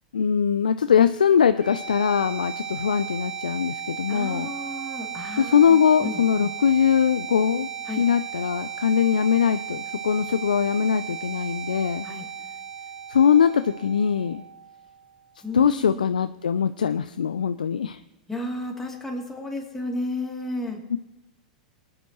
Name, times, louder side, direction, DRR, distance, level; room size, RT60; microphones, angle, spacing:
voice 1, 0.1-4.5 5.4-7.7 8.0-12.1 13.1-14.4 15.5-18.0 20.9-21.0, left 7 dB, 85° left, 11 dB, 0.4 m, -21 dB
sound 1, 1.4-15.4, right 7 dB, 20° right, 2.2 m, -36 dB
voice 2, 4.1-6.5 7.8-8.0 12.0-12.3 15.4-16.1 18.3-20.8, left 2 dB, 10° left, 0 dB, 2.8 m, -33 dB
20.5 x 9.9 x 3.0 m, 1.0 s
hypercardioid pair, 100°, 4 cm